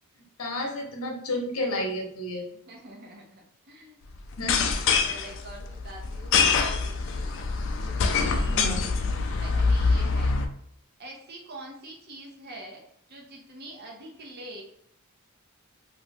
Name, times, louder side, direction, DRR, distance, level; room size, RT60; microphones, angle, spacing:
voice 1, 0.4-2.5 4.4-4.8 8.5-8.9, left 1 dB, 75° left, 1 dB, 0.8 m, -31 dB
voice 2, 2.5-4.0 4.7-7.3 7.8-8.7 9.4-10.4 11.0-12.8 13.1-14.6, right 1 dB, 45° right, -1 dB, 0.7 m, -45 dB
sound 1, 4.3-10.5, left 4 dB, 55° left, 0.4 m, -25 dB
2.8 x 2.5 x 3.3 m, 0.71 s
head